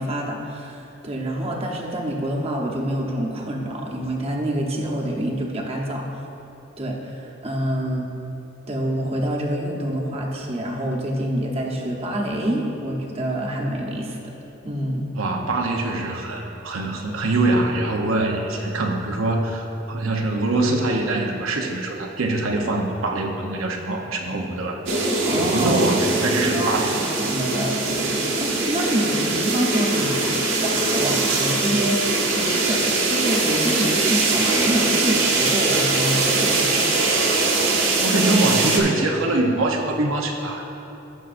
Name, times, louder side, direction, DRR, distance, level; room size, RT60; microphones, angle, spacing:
voice 1, 0.0-6.1 6.8-8.1 8.7-14.3 14.6-15.0 25.2-25.9 26.5-30.2 30.6-36.7 37.5-37.8, right 1 dB, 30° right, -2 dB, 1.0 m, -27 dB
voice 2, 15.1-24.8 25.3-27.1 38.0-40.6, right 2 dB, 85° right, 1 dB, 0.8 m, -23 dB
sound 1, 24.9-38.8, right 3 dB, 70° right, 1.2 m, -22 dB
15.5 x 6.3 x 2.6 m, 3.0 s
head